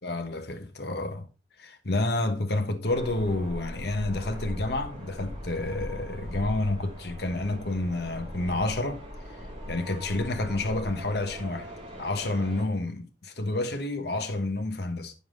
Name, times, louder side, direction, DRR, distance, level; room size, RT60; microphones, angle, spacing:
voice 1, 0.0-1.3 1.6-9.0 9.7-11.7 12.0-15.1, left 2 dB, 60° left, 1.4 m, -29 dB
sound 1, 2.9-12.6, equal, 30° right, 5.8 m, -40 dB
9.5 x 6.9 x 3.9 m
head